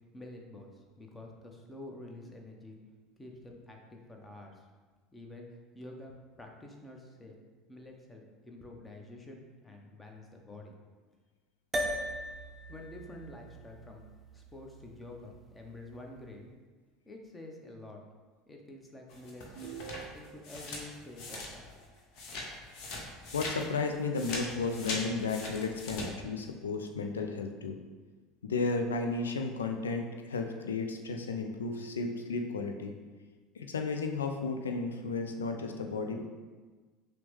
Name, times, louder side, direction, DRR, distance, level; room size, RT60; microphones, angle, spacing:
voice 1, 0.1-2.8 3.2-4.7 5.1-5.5 5.7-6.1 6.4-7.4 7.7-10.7 12.7-14.0 14.3-16.5 17.1-18.0 18.5-19.7 20.1-21.9, left 2 dB, 15° left, 1 dB, 0.7 m, -48 dB
sound 1, 11.7-16.3, equal, 20° right, 0.6 m, -40 dB
sound 2, 19.1-21.8 22.2-26.1, left 2 dB, 55° left, 0.8 m, -41 dB
sound 3, 19.6-20.6, right 10 dB, 65° right, 0.3 m, -45 dB
voice 2, 23.3-27.8 28.4-32.9 33.6-36.2, left 4 dB, 80° left, 4 dB, 0.3 m, -33 dB
5.9 x 2.1 x 3.2 m, 1.4 s
figure-of-eight pair, 70°, 0 cm